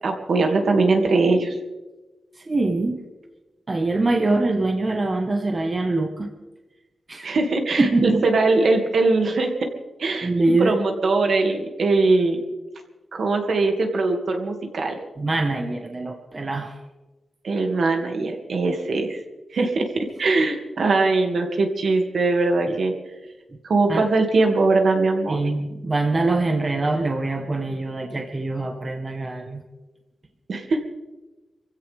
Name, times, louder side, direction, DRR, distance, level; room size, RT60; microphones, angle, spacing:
voice 1, 0.0-1.5 7.2-9.7 10.0-10.3 10.6-12.4 13.1-15.0 17.4-19.2 19.5-19.9 20.2-22.9 23.6-25.4 30.5-30.8, right 3 dB, 60° right, 3 dB, 2.3 m, -21 dB
voice 2, 2.4-3.0 3.7-6.3 7.1-7.4 7.8-8.2 10.2-10.8 15.2-16.8 22.7-22.8 23.9-24.1 25.3-29.6, right 2 dB, 25° right, 4 dB, 1.3 m, -23 dB
26.0 x 15.5 x 3.6 m, 1.1 s
wide cardioid pair, 145°, 0 cm